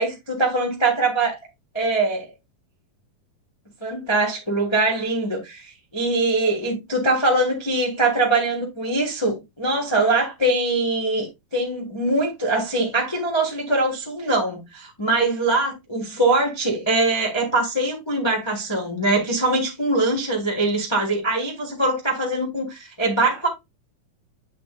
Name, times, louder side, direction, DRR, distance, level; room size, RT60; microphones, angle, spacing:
voice 1, 0.0-1.4 1.7-2.3 3.8-23.5, right 2 dB, 30° left, 0.5 m, -22 dB
8.8 x 5.5 x 2.5 m
omnidirectional pair, 3.9 m